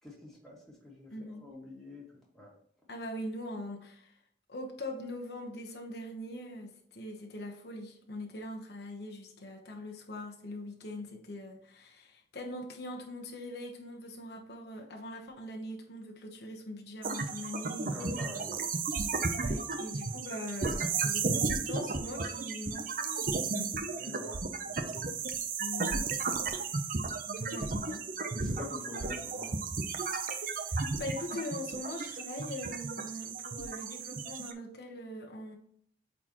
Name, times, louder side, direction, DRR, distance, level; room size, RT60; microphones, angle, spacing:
voice 1, 0.0-2.5 17.9-19.0 24.0-25.0 26.5-26.7 27.6-27.7 28.4-29.6, left 2 dB, 5° left, -5 dB, 2.3 m, -46 dB
voice 2, 1.1-1.5 2.9-4.2 4.5-18.0 19.3-23.7 25.6-26.1 27.3-28.0 30.2-35.6, left 1 dB, 70° left, 1 dB, 1.1 m, -42 dB
sound 1, 17.0-34.5, right 4 dB, 50° right, 0.7 m, -34 dB
8.7 x 4.1 x 3.0 m, 0.65 s
head